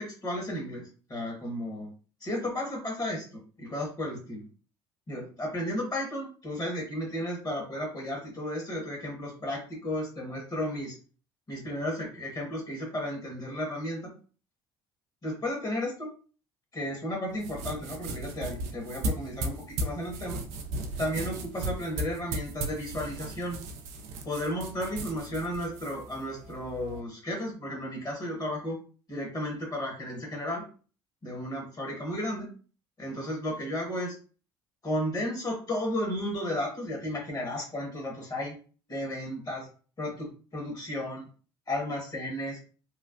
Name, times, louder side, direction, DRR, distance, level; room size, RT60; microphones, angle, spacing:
voice 1, 0.0-1.9 2.2-4.4 5.1-11.0 11.5-14.1 15.2-16.1 16.7-20.4 21.0-23.6 24.2-28.8 29.1-30.6 31.2-32.5 33.0-34.1 34.8-38.6 38.9-39.7 40.0-41.3 41.7-42.6, left 1 dB, 30° left, 0 dB, 1.4 m, -33 dB
sound 1, 17.3-27.0, right 2 dB, 65° right, 0.5 m, -36 dB
3.1 x 2.0 x 2.5 m, 0.39 s
hypercardioid pair, 60°, 12 cm